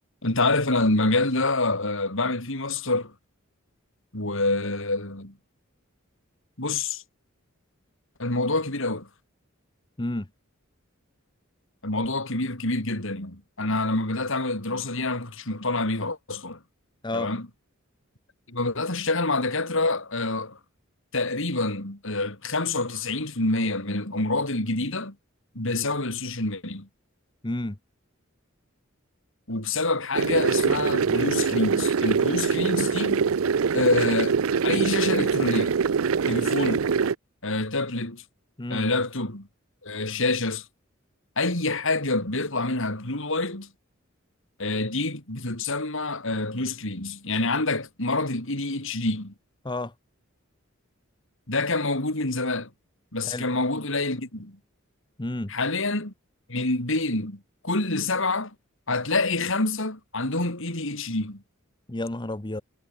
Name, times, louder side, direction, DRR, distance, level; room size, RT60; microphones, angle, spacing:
voice 1, 0.2-3.1 4.1-5.3 6.6-7.0 8.2-9.1 11.8-16.6 17.1-17.4 18.5-20.6 21.1-25.2 25.6-26.9 29.5-33.2 33.7-34.4 34.6-35.8 36.3-36.9 37.4-38.2 38.7-39.5 39.8-40.6 41.4-43.7 44.6-49.3 51.5-52.7 53.1-54.6 55.5-56.1 56.5-58.5 58.9-61.4, left 2 dB, 65° left, 5.3 m, -27 dB
voice 2, 27.4-27.8 38.6-38.9 49.6-49.9 53.2-53.5 55.2-55.5 61.9-62.6, left 1 dB, 20° left, 1.1 m, -30 dB
sound 1, 30.1-37.1, right 5 dB, 75° right, 0.5 m, -23 dB
head